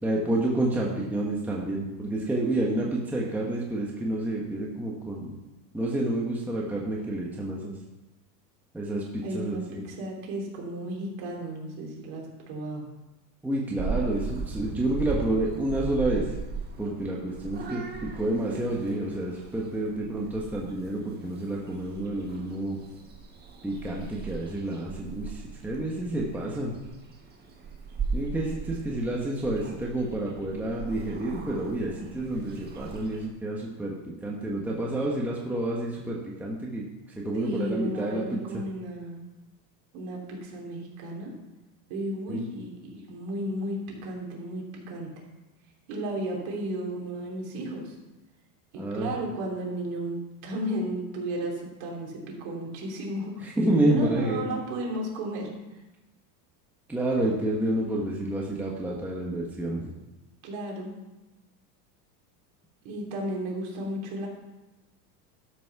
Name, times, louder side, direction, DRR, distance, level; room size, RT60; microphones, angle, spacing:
voice 1, 0.0-5.4 5.7-7.8 8.7-9.8 13.4-16.3 16.8-22.8 23.6-26.7 28.1-36.8 37.2-38.4 42.3-42.4 48.8-49.2 53.4-54.6 56.9-59.9, right 1 dB, 5° right, -3 dB, 1.1 m, -29 dB
voice 2, 9.2-12.8 37.3-39.2 39.9-41.3 41.9-45.1 45.9-47.9 48.7-51.5 51.8-53.3 53.8-55.5 60.4-60.9 62.8-64.3, right 1 dB, 50° right, -1 dB, 3.4 m, -34 dB
Purr / Meow, 13.8-33.3, right 5 dB, 20° right, 1.4 m, -38 dB
12.0 x 6.2 x 5.7 m, 1.1 s
supercardioid pair, 150°, 48 cm